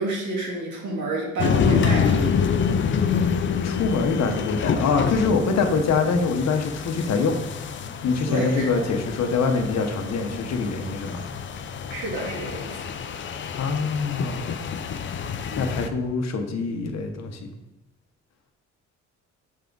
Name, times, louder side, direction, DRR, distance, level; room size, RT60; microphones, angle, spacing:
voice 1, 0.0-2.2 8.3-8.8 11.9-12.8, right 2 dB, 75° right, -2 dB, 2.1 m, -29 dB
sound 1, 1.4-15.9, left 6 dB, 40° left, 0.5 m, -27 dB
voice 2, 3.6-7.4 8.0-11.2 13.6-14.5 15.6-17.5, left 4 dB, 60° left, 5 dB, 0.9 m, -24 dB
7.4 x 3.5 x 3.8 m, 0.94 s
cardioid pair, 90°, 30 cm